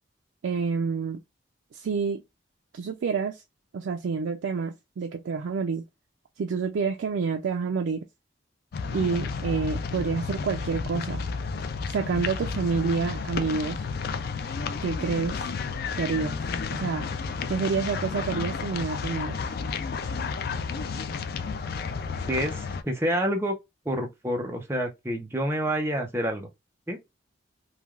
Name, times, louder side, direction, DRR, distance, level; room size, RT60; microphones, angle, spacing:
voice 1, 0.4-1.2 1.7-2.2 2.7-3.4 3.7-5.8 6.4-8.0 8.9-11.3 11.9-13.8 14.8-15.5 16.0-16.4 16.7-17.1 17.5-19.4, right 5 dB, 75° right, 0.4 m, -28 dB
sound 1, 8.7-22.8, left 5 dB, 50° left, 0.3 m, -32 dB
voice 2, 22.3-23.5 23.8-26.5 26.9-27.0, equal, 15° right, 0.6 m, -28 dB
3.2 x 2.3 x 2.3 m
head